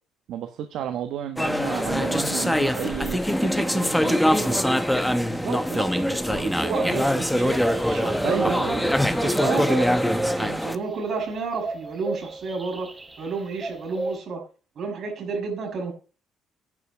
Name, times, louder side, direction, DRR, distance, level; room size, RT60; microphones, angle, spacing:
voice 1, 0.3-4.8 8.2-9.4, right 10 dB, 70° right, 6 dB, 1.1 m, -32 dB
sound 1, 1.4-10.8, equal, ahead, 0.8 m, -23 dB
voice 2, 5.2-8.6 9.2-12.9 13.2-14.4 14.8-15.9, right 4 dB, 50° right, 2 dB, 5.9 m, -31 dB
sound 2, 6.6-14.2, right 2 dB, 15° right, 1.3 m, -34 dB
11.0 x 6.1 x 8.1 m, 0.38 s
cardioid pair, 135°, 0 cm